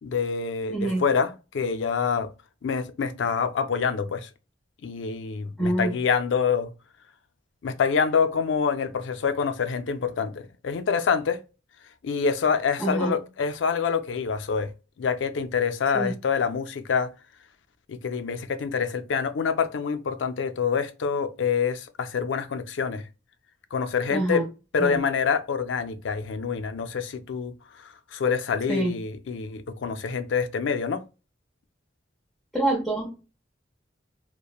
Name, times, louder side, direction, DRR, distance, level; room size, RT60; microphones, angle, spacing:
voice 1, 0.0-2.3 2.6-4.3 4.8-6.7 7.6-11.4 12.0-14.7 15.0-17.1 17.9-23.0 23.7-24.4 24.7-27.5 27.8-31.0, left 6 dB, 80° left, 0.4 m, -26 dB
voice 2, 0.7-1.1 5.6-5.9 12.8-13.2 15.9-16.1 24.1-24.5 24.8-25.0 28.7-28.9 32.5-33.1, right 2 dB, ahead, 0.6 m, -26 dB
2.9 x 2.1 x 2.3 m
head